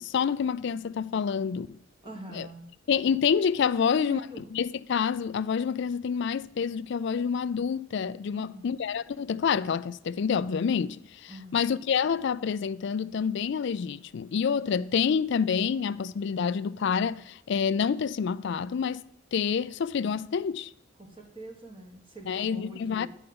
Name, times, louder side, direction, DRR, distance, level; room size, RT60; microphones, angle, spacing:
voice 1, 0.0-1.8 2.3-2.5 2.9-4.2 4.5-19.0 19.3-20.7 22.3-23.1, left 6 dB, 55° left, 0.3 m, -28 dB
voice 2, 2.0-2.7 3.8-4.4 8.3-8.7 11.3-11.6 21.0-23.1, right 1 dB, 25° right, 1.4 m, -44 dB
9.9 x 5.0 x 7.7 m
head